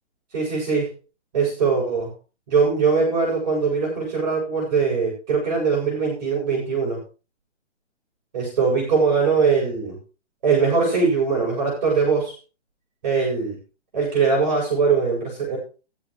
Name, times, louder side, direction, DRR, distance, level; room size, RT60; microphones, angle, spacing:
voice 1, 0.3-0.9 1.3-2.1 2.5-7.0 8.3-10.0 10.4-12.4 13.0-13.6 13.9-15.6, right 5 dB, 35° right, -3 dB, 7.7 m, -21 dB
21.0 x 8.8 x 3.3 m, 0.33 s
hypercardioid pair, 175°, 36 cm